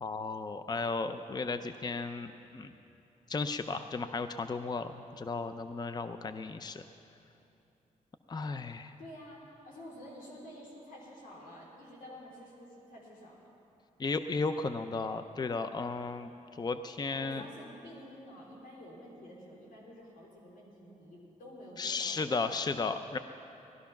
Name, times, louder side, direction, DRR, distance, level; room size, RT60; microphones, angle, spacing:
voice 1, 0.0-2.7 3.3-6.8 8.3-8.9 14.0-16.3 16.6-17.4 21.8-23.2, left 4 dB, 30° left, 10 dB, 0.5 m, -34 dB
voice 2, 9.0-13.5 17.1-22.8, equal, 90° left, -3 dB, 3.8 m, -50 dB
18.5 x 12.5 x 5.9 m, 2.8 s
cardioid pair, 85°, 14 cm